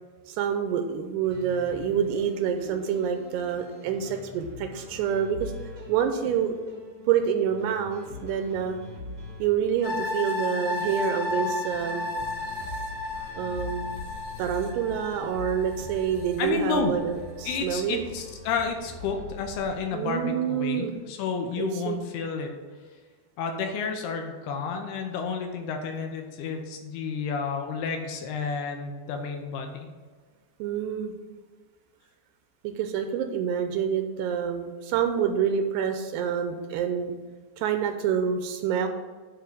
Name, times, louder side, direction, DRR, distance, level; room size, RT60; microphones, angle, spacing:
voice 1, 0.3-5.5 5.9-6.5 7.1-8.8 9.4-12.1 13.4-13.9 14.4-18.0 19.9-21.0 21.6-22.0 30.6-31.1 32.6-37.1 37.6-38.9, right 8 dB, 80° right, 7 dB, 2.5 m, -27 dB
sound 1, 1.2-19.7, left 2 dB, 60° right, 0.9 m, -43 dB
sound 2, 9.8-17.1 17.5-17.6, left 2 dB, 50° left, 2.2 m, -33 dB
voice 2, 16.4-16.9 17.5-22.5 23.4-29.9, left 5 dB, 75° left, 4 dB, 2.6 m, -31 dB
9.6 x 3.8 x 6.6 m, 1.5 s
omnidirectional pair, 5.0 m